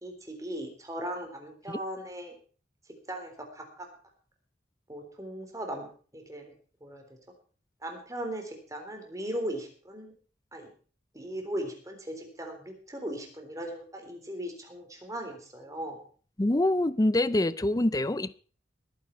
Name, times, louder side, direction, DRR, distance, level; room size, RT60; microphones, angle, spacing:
voice 1, 0.0-2.3 3.1-3.9 4.9-6.5 6.8-7.0 7.8-10.1 10.5-10.7 11.1-16.0, right 1 dB, 20° right, 3.7 m, -38 dB
voice 2, 16.4-18.4, left 1 dB, 20° left, 0.5 m, -25 dB
20.0 x 9.5 x 4.5 m
head